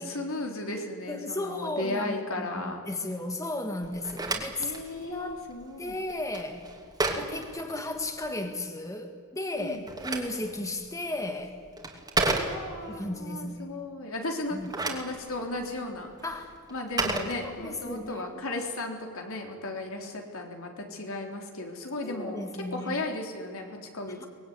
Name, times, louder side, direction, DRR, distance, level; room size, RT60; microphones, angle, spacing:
voice 1, 0.0-2.8 4.6-6.0 7.1-7.2 9.6-9.9 12.4-14.6 14.8-16.1 16.7-24.3, left 2 dB, 70° left, 2 dB, 3.7 m, -35 dB
voice 2, 1.1-5.4 5.8-6.7 7.2-11.5 12.9-13.7 14.5-14.7 16.2-16.5 17.4-18.4 22.0-23.0 24.2-24.3, left 2 dB, 15° left, 5 dB, 1.7 m, -35 dB
Telephone, 3.8-8.3 9.6-13.0 14.4-18.0, right 2 dB, 20° right, 2.9 m, -34 dB
24.0 x 20.5 x 9.5 m, 2.3 s
head